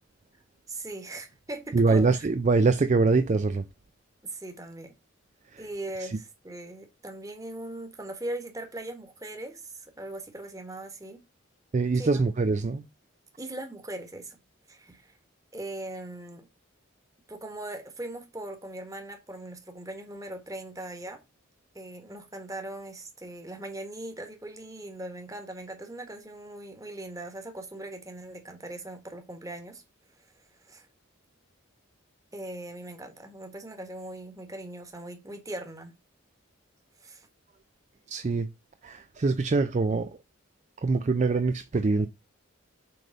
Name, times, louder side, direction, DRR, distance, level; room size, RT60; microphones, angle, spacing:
voice 1, 0.7-2.2 4.2-4.9 5.6-11.2 11.9-12.2 13.4-14.4 14.7-15.2 15.5-16.5 17.3-21.2 21.7-29.8 30.2-30.9 32.3-35.9 37.0-37.3, right 1 dB, 15° right, 1.3 m, -40 dB
voice 2, 1.7-3.6 5.5-5.6 6.0-6.2 11.7-12.8 38.1-38.5 38.8-40.2 40.8-42.1, right 3 dB, 35° right, 0.4 m, -24 dB
7.7 x 3.4 x 5.0 m
head